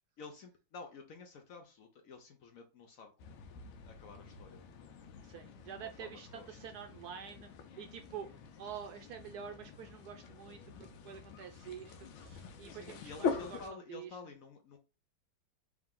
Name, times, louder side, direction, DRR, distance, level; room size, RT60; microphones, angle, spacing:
voice 1, 0.2-4.6 5.3-6.6 12.7-14.8, left 4 dB, 70° left, 4 dB, 0.8 m, -52 dB
sound 1, 3.2-13.7, left 5 dB, 90° left, 1.5 m, -44 dB
voice 2, 5.2-7.5 7.7-14.2, right 8 dB, 75° right, 5 dB, 0.9 m, -47 dB
3.6 x 3.3 x 3.7 m, 0.30 s
omnidirectional pair, 2.2 m